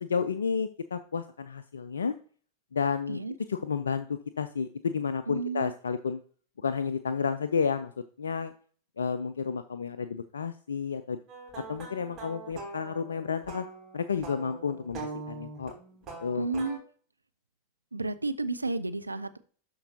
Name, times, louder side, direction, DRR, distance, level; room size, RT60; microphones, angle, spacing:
voice 1, 0.0-2.1 2.7-3.2 3.5-6.2 6.6-7.9 8.2-8.5 9.0-11.2 11.7-13.7 13.9-15.7 16.2-16.5, left 6 dB, 70° left, 11 dB, 0.4 m, -31 dB
voice 2, 5.3-5.7 16.3-16.8 17.9-19.4, right 3 dB, 80° right, 11 dB, 0.6 m, -32 dB
sound 1, 11.3-16.8, right 3 dB, 30° right, 3.7 m, -43 dB
12.5 x 4.6 x 2.8 m, 0.43 s
figure-of-eight pair, 90°, 0 cm